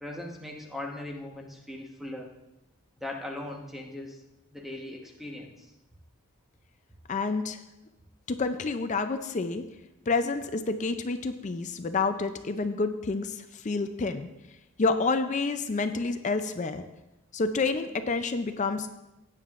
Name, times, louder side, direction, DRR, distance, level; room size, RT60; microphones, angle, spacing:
voice 1, 0.0-2.3 3.0-4.2 4.5-5.7, left 1 dB, ahead, 0 dB, 1.1 m, -39 dB
voice 2, 7.1-7.6 8.3-9.6 10.1-14.3 14.8-16.8 17.3-18.9, left 3 dB, 35° left, 9 dB, 0.4 m, -29 dB
16.5 x 9.1 x 2.5 m, 0.96 s
head